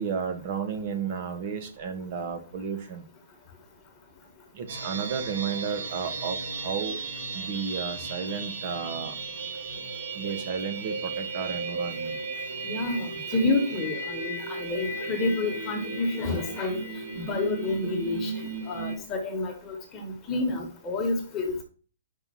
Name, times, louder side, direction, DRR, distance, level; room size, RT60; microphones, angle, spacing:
voice 1, 0.0-3.0 4.5-6.4 6.6-7.0 7.3-9.2 10.1-12.2, right 6 dB, 45° right, 8 dB, 1.3 m, -32 dB
sound 1, 4.7-19.0, right 3 dB, 75° right, 2.0 m, -35 dB
voice 2, 12.6-16.8 17.1-18.3 18.7-21.6, left 2 dB, 20° left, 2 dB, 1.5 m, -29 dB
5.5 x 4.5 x 5.8 m, 0.38 s
hypercardioid pair, 150°, 0 cm